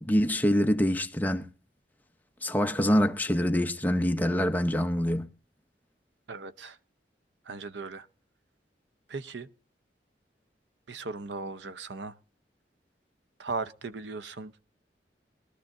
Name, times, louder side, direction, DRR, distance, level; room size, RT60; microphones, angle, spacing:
voice 1, 0.0-1.5 2.4-5.3, equal, 10° left, 0.7 m, -25 dB
voice 2, 6.3-6.8 7.4-8.1 9.1-9.5 10.9-12.1 13.4-14.6, right 4 dB, 85° right, 0.8 m, -37 dB
21.5 x 13.0 x 2.6 m
head